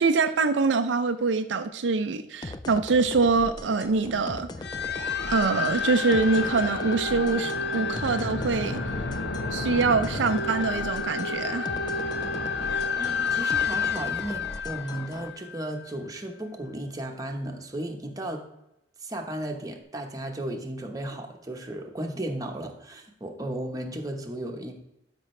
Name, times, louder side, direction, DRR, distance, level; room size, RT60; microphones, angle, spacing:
voice 1, 0.0-4.5 5.3-8.8 9.5-11.7, right 4 dB, 70° right, 8 dB, 0.5 m, -24 dB
sound 1, 2.4-15.3, left 2 dB, 20° left, 0.3 m, -40 dB
sound 2, 4.6-15.8, left 4 dB, 60° left, 1.1 m, -30 dB
voice 2, 13.0-18.4 19.0-24.7, right 1 dB, 20° right, 2 dB, 1.1 m, -35 dB
12.5 x 5.3 x 3.2 m, 0.86 s
head